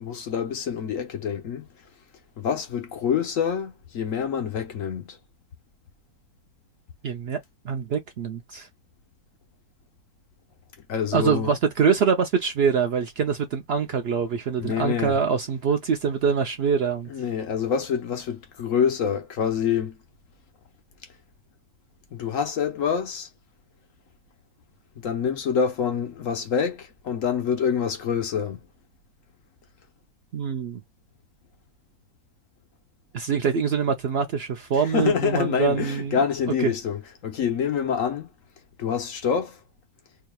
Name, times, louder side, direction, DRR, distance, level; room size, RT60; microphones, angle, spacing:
voice 1, 0.0-1.7 2.4-5.2 10.9-11.5 14.6-15.2 17.1-20.0 22.1-23.3 24.9-28.7 34.8-38.3 38.8-39.6, left 7 dB, 60° left, 1.2 m, -26 dB
voice 2, 7.0-7.4 7.6-8.7 11.1-17.1 30.3-30.8 33.1-36.2 36.6-36.7, right 6 dB, 70° right, 0.6 m, -24 dB
4.6 x 2.8 x 2.3 m
omnidirectional pair, 1.6 m